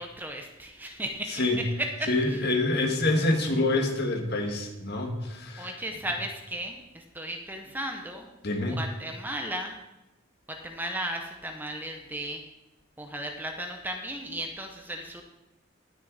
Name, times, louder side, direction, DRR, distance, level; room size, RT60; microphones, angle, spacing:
voice 1, 0.0-2.4 5.6-8.3 8.7-9.7 10.5-12.4 13.0-15.2, right 1 dB, 10° right, 3 dB, 0.8 m, -35 dB
voice 2, 2.1-5.7 8.4-8.8, left 2 dB, 50° left, 2 dB, 1.9 m, -26 dB
18.0 x 6.2 x 4.1 m, 1.0 s
head